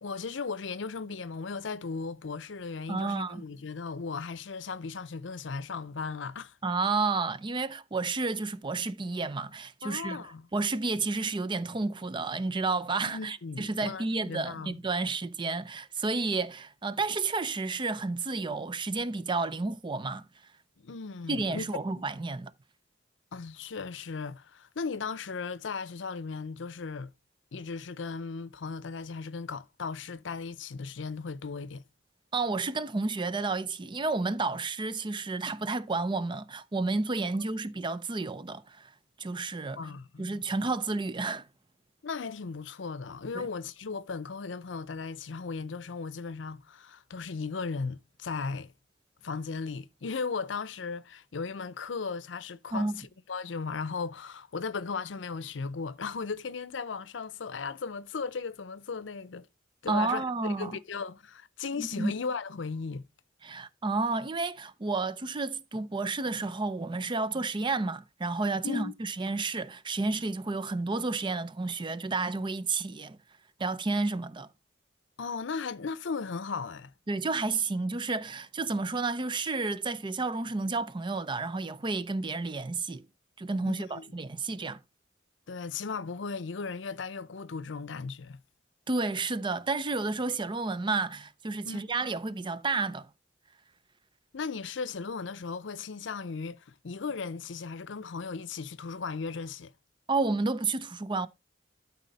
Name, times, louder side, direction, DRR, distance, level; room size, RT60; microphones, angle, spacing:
voice 1, 0.0-6.6 9.8-10.5 13.1-14.8 20.8-21.7 23.3-27.1 27.5-31.8 39.7-40.4 42.0-48.7 49.2-59.5 59.8-63.1 68.6-68.9 75.2-76.9 83.6-84.0 85.5-88.4 91.6-91.8 94.3-99.7, left 4 dB, 75° left, 0.6 m, -36 dB
voice 2, 2.9-3.4 6.6-10.2 10.5-20.2 21.3-22.5 32.3-38.9 39.2-39.8 40.2-41.5 43.3-43.5 52.7-52.9 59.9-60.8 61.8-62.1 63.4-73.2 73.6-74.5 77.1-83.0 83.4-84.8 88.9-93.1 100.1-101.3, right 3 dB, 25° right, 0.5 m, -31 dB
12.5 x 4.2 x 4.0 m
head